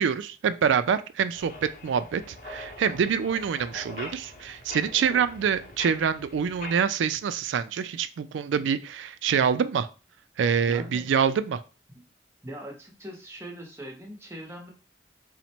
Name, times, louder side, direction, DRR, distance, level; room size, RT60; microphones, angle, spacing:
voice 1, 0.0-9.9 10.4-11.6, right 7 dB, 90° right, 13 dB, 0.3 m, -26 dB
sound 1, 1.3-6.8, left 2 dB, 45° left, 0.7 m, -43 dB
voice 2, 10.7-11.1 11.9-12.1 12.4-14.7, equal, 15° right, 1 dB, 0.8 m, -41 dB
4.0 x 2.1 x 4.3 m, 0.34 s
head